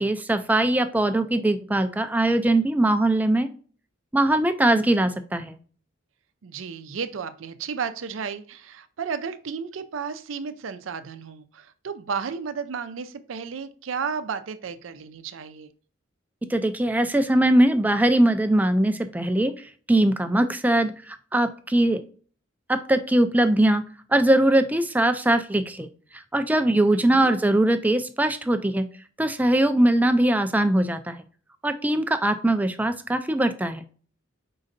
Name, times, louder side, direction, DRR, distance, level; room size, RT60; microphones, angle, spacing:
voice 1, 0.0-3.5 4.1-5.6 16.5-22.0 22.7-23.8 24.1-25.9 26.1-28.9 29.2-31.2 31.6-33.8, right 1 dB, 10° right, 9 dB, 0.3 m, -21 dB
voice 2, 6.4-15.7 26.9-27.3, right 6 dB, 90° right, 10 dB, 0.5 m, -33 dB
5.2 x 3.8 x 2.5 m, 0.43 s
head